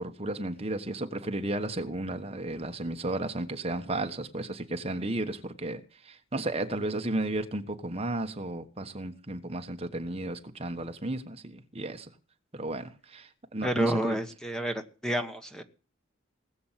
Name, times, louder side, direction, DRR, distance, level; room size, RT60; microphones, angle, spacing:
voice 1, 0.0-12.1 12.5-14.2, right 2 dB, 30° right, 1.3 m, -34 dB
voice 2, 13.6-15.6, right 1 dB, 5° left, 1.2 m, -30 dB
19.5 x 7.8 x 7.4 m
head